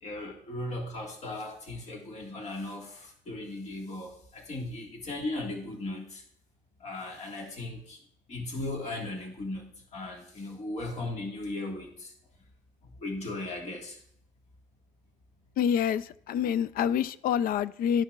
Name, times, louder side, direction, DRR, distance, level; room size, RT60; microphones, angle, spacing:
voice 1, 0.0-6.2 6.8-8.0 8.3-12.1 13.0-14.0, left 2 dB, 40° left, 0 dB, 1.7 m, -37 dB
voice 2, 15.6-18.0, left 8 dB, 60° left, 17 dB, 0.4 m, -27 dB
12.0 x 5.6 x 2.4 m, 0.67 s
cardioid pair, 110°, 17 cm